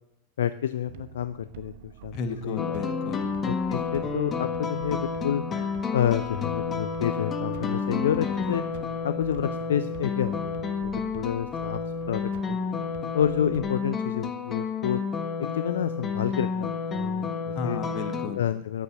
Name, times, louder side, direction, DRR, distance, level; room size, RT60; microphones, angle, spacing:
voice 1, 0.4-2.2 2.4-2.8 3.4-5.4 5.9-8.6 9.0-11.8 12.1-12.6 13.1-15.0 15.4-17.8 18.4-18.8, left 9 dB, 60° left, 14 dB, 0.5 m, -29 dB
sound 1, 0.9-13.7, right 12 dB, 50° right, 1.0 m, -46 dB
voice 2, 2.1-3.3 17.6-18.4, left 5 dB, 40° left, 8 dB, 1.7 m, -33 dB
sound 2, 2.6-18.3, left 5 dB, 25° left, 1.4 m, -30 dB
14.5 x 10.5 x 6.2 m, 0.86 s
figure-of-eight pair, 90°, 0 cm